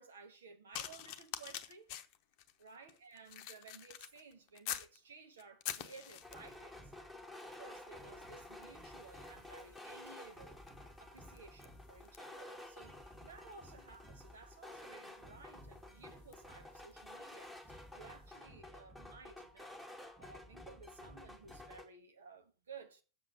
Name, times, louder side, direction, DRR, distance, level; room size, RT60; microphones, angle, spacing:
voice 1, 0.0-1.9 2.6-6.9 7.4-10.6 11.0-19.7 20.2-23.0, right 5 dB, 65° right, 1.7 m, -56 dB
sound 1, 0.7-5.0 5.4-6.6 7.4-7.6 7.9-17.6 18.3-18.5, left 11 dB, 45° left, 0.8 m, -49 dB
sound 2, 6.2-21.8, left 1 dB, 5° right, 2.3 m, -52 dB
7.6 x 6.8 x 6.6 m
figure-of-eight pair, 90°, 0 cm